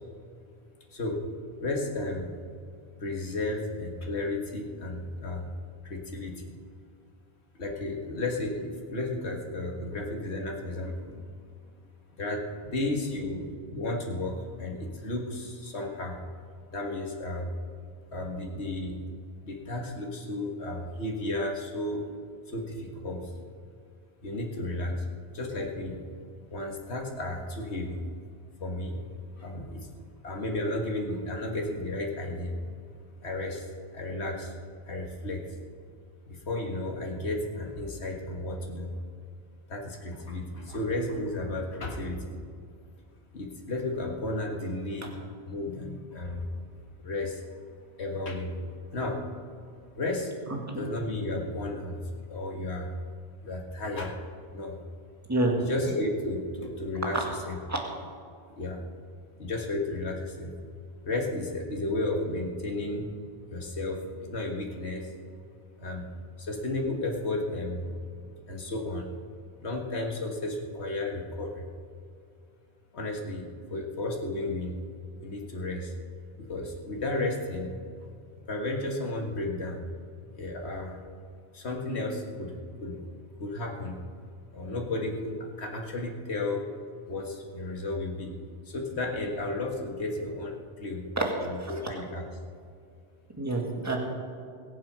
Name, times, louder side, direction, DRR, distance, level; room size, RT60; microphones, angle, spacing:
voice 1, 1.6-2.3 3.0-5.5 5.8-6.6 7.6-11.3 12.2-16.2 16.7-17.5 18.1-19.0 19.4-22.0 22.5-23.3 24.2-25.1 25.3-26.0 26.5-28.0 28.6-29.0 29.4-29.9 30.2-32.6 33.2-33.7 33.9-34.6 34.9-35.5 36.3-38.9 39.7-42.4 43.3-45.1 45.5-46.5 47.0-47.4 48.0-48.6 48.9-49.3 50.0-50.3 50.7-52.0 52.3-52.9 53.4-54.2 54.5-54.8 55.6-57.6 58.6-58.8 59.4-60.5 61.0-63.1 63.5-65.3 65.8-66.1 66.4-67.9 68.5-69.2 69.6-71.7 72.9-74.8 75.2-75.9 76.4-77.8 78.5-79.8 80.3-81.0 81.5-83.0 83.4-84.0 84.5-86.7 87.1-88.4 88.7-91.1 91.4-92.3, left 2 dB, 90° left, 0 dB, 1.9 m, -33 dB
voice 2, 93.4-94.0, right 2 dB, 15° right, 0 dB, 1.9 m, -27 dB
21.5 x 7.4 x 5.5 m, 2.4 s
omnidirectional pair, 1.1 m